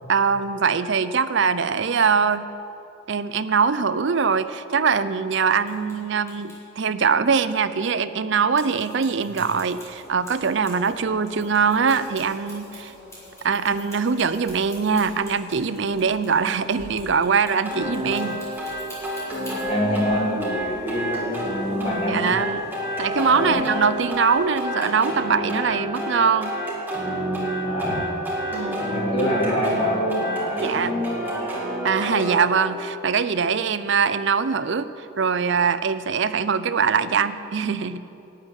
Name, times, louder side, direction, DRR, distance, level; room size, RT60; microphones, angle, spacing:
voice 1, 0.1-2.5 3.1-12.9 13.4-18.5 21.7-22.6 23.0-26.5 28.5-28.8 30.6-30.9 31.8-38.0, right 5 dB, 55° right, 13 dB, 0.5 m, -22 dB
sound 1, 5.6-5.9 6.3-6.6 8.5-10.9 11.2-19.7, left 1 dB, 15° left, 4.0 m, -46 dB
sound 2, 9.6-24.5, equal, 25° right, 3.4 m, -46 dB
sound 3, 17.6-32.4, equal, 10° right, 2.5 m, -28 dB
voice 2, 19.5-21.6 21.8-22.4 22.9-23.6 27.6-28.1 28.8-31.5, equal, 30° left, -5 dB, 3.5 m, -26 dB
12.5 x 8.2 x 9.8 m, 2.8 s
head